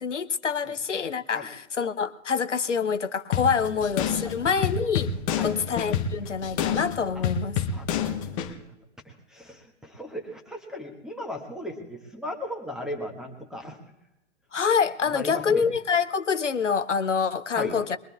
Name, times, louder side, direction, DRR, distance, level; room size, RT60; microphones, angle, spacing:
voice 1, 0.0-5.1 5.4-7.6 14.5-18.0, left 6 dB, 90° left, 12 dB, 0.6 m, -26 dB
sound 1, 3.3-8.5, left 7 dB, 30° left, 0.8 m, -28 dB
voice 2, 7.7-8.6 9.0-13.8 15.1-15.6 17.5-17.8, left 1 dB, ahead, 3 dB, 1.3 m, -37 dB
22.5 x 22.0 x 2.4 m, 0.93 s
figure-of-eight pair, 120°, 35 cm